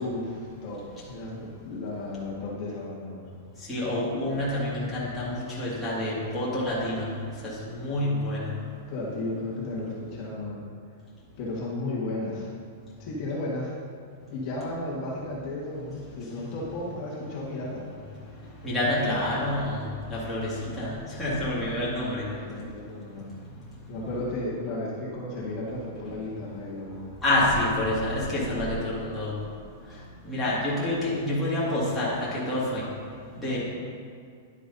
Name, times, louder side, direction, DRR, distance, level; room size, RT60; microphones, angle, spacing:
voice 1, 0.0-3.3 8.9-10.7 11.4-12.5 13.0-13.7 14.3-17.9 20.5-20.7 22.3-23.3 23.9-27.0, left 2 dB, 35° left, -6 dB, 1.6 m, -34 dB
voice 2, 3.7-7.1 7.4-8.5 18.6-19.8 20.1-22.2 27.2-29.3 30.2-32.8 33.4-33.6, left 1 dB, 5° left, -11 dB, 2.1 m, -27 dB
10.5 x 9.3 x 2.7 m, 2.2 s
supercardioid pair, 170°, 0 cm